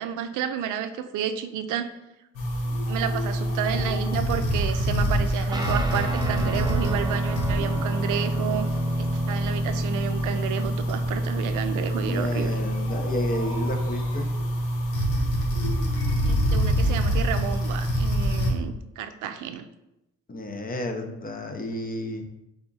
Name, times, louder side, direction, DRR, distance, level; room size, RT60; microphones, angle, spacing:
voice 1, 0.0-1.9 2.9-8.7 9.0-12.6 16.2-19.7, right 8 dB, 85° right, 9 dB, 0.5 m, -31 dB
sound 1, 2.3-18.5, equal, 90° left, 1.0 m, -26 dB
sound 2, 2.6-17.2, left 3 dB, 55° left, 1.2 m, -43 dB
Guitar, 5.5-14.2, right 1 dB, 15° right, 0.6 m, -34 dB
voice 2, 12.0-14.3 20.3-22.3, left 1 dB, 30° left, 4 dB, 0.7 m, -32 dB
3.5 x 3.5 x 3.9 m, 0.90 s
cardioid pair, 90°, 30 cm